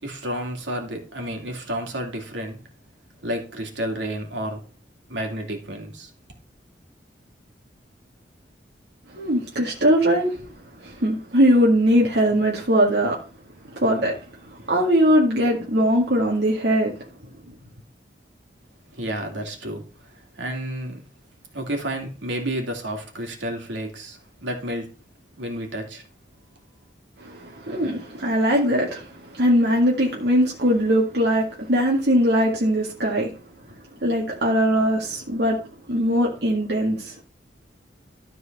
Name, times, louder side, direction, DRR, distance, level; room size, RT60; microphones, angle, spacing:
voice 1, 0.0-2.6 3.2-4.6 5.1-6.1 18.9-21.0 21.5-24.9 25.4-26.0, right 1 dB, 85° right, 2.7 m, -31 dB
voice 2, 9.1-10.4 10.8-13.2 13.8-14.1 14.7-16.9 27.2-33.3 34.0-35.6 35.9-37.1, equal, 70° right, 2.0 m, -20 dB
13.0 x 4.8 x 5.4 m
head